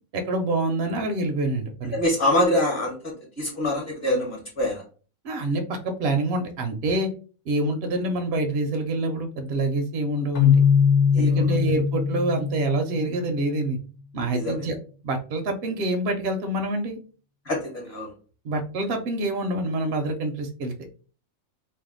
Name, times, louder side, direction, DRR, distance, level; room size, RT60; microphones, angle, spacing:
voice 1, 0.1-1.9 5.2-7.1 7.5-10.6 11.2-13.8 14.1-14.8 15.0-17.0 18.4-20.7, right 2 dB, 60° right, 5 dB, 0.6 m, -26 dB
voice 2, 1.9-4.8 11.1-11.5 14.3-14.7 17.4-18.1, left 1 dB, 40° left, -2 dB, 1.1 m, -25 dB
Keyboard (musical), 10.4-13.3, left 7 dB, 75° left, 1.1 m, -21 dB
2.7 x 2.2 x 3.6 m, 0.38 s
omnidirectional pair, 1.4 m